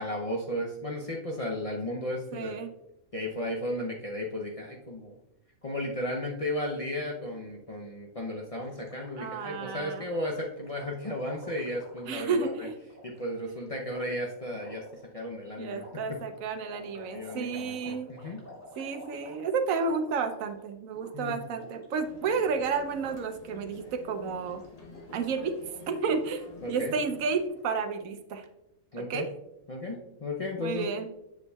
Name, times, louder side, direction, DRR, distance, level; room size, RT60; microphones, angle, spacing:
voice 1, 0.0-2.6 3.1-5.1 5.6-12.7 13.0-16.2 16.9-18.4 21.1-21.4 26.6-26.9 28.9-29.3 29.7-30.9, left 1 dB, 50° left, -1 dB, 0.4 m, -34 dB
voice 2, 2.3-2.7 9.2-10.1 12.1-12.7 15.6-18.1 18.8-24.6 25.1-25.5 25.9-28.4 29.1-29.3 30.6-31.1, right 5 dB, 70° right, 8 dB, 1.0 m, -31 dB
Gurgling, 8.6-13.3 13.9-14.0 14.6-15.0 15.7-20.7 20.9-21.1 21.4-22.6 22.8-23.0 23.4-23.9 24.2-27.6, equal, 10° left, 1.9 m, -51 dB
sound 1, 22.0-27.5, left 3 dB, 30° left, 0.8 m, -50 dB
7.1 x 6.7 x 2.3 m, 0.89 s
omnidirectional pair, 1.5 m